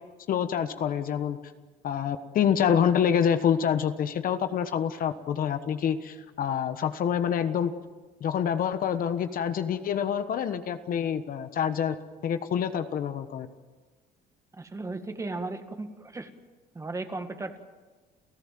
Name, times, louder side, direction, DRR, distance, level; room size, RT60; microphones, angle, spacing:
voice 1, 0.3-1.4 1.8-7.7 8.2-11.9 12.2-13.5, left 8 dB, 55° left, 10 dB, 1.3 m, -26 dB
voice 2, 14.5-16.3 16.7-17.6, right 3 dB, 20° right, 7 dB, 1.9 m, -36 dB
29.5 x 15.0 x 7.7 m, 1.3 s
cardioid pair, 110°, 17 cm